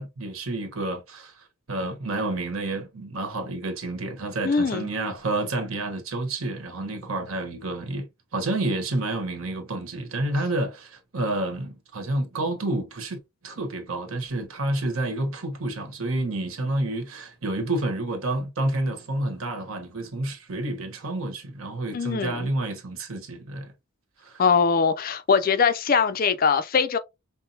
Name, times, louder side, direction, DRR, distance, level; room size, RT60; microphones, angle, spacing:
voice 1, 0.0-8.1 8.3-13.2 13.4-23.7 24.2-24.4, right 2 dB, 75° right, 1.2 m, -29 dB
voice 2, 4.4-4.9 21.9-22.5 24.4-27.0, left 5 dB, 40° left, 0.4 m, -22 dB
5.6 x 2.1 x 2.7 m
head